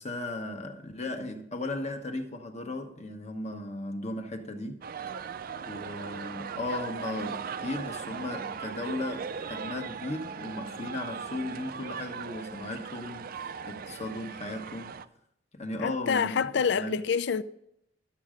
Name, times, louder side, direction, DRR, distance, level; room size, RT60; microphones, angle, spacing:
voice 1, 0.0-4.8 5.6-13.3 13.7-15.0 15.5-16.5 16.7-17.0, left 2 dB, 35° left, 1.1 m, -36 dB
sound 1, 4.8-15.0, right 6 dB, 50° right, 0.4 m, -39 dB
voice 2, 15.8-17.4, left 6 dB, 60° left, 0.5 m, -27 dB
12.0 x 7.4 x 5.0 m
head